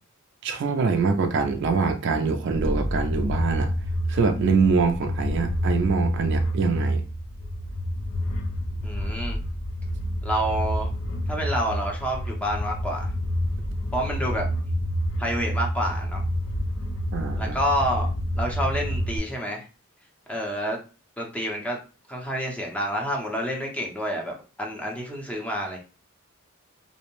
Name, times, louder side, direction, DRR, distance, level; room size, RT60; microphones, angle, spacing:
voice 1, 0.4-3.7 4.1-7.0 17.1-17.6, right 4 dB, 60° right, 0.3 m, -24 dB
sound 1, 2.5-19.2, equal, 75° left, 0.4 m, -28 dB
voice 2, 8.8-9.4 10.2-10.9 11.3-13.1 13.9-14.5 15.2-16.2 17.4-18.1 18.4-19.7 20.3-20.8 21.2-21.8 22.1-25.8, equal, 5° left, 0.6 m, -28 dB
2.6 x 2.0 x 2.9 m
head